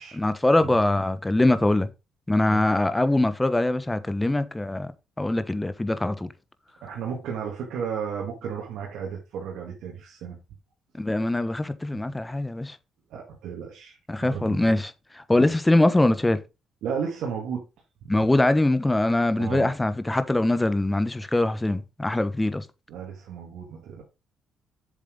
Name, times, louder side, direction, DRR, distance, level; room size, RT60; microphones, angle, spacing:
voice 1, 0.1-1.9 2.3-4.9 5.2-6.3 11.0-12.8 14.1-16.4 18.1-22.7, left 1 dB, 10° left, 1.1 m, -23 dB
voice 2, 6.8-10.4 13.1-14.0 14.3-14.8 15.4-15.5 16.8-17.7 18.0-18.3 19.4-19.7 22.9-24.0, right 7 dB, 85° right, 2.2 m, -34 dB
7.5 x 7.4 x 3.8 m
cardioid pair, 90°, 0 cm